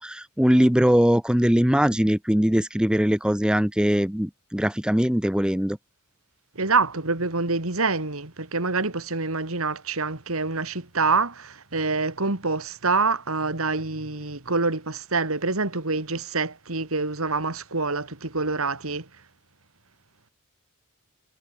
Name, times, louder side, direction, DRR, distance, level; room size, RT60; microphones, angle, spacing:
voice 1, 0.0-5.8, equal, 5° right, 0.6 m, -21 dB
voice 2, 6.5-19.1, right 3 dB, 70° right, 2.7 m, -26 dB
head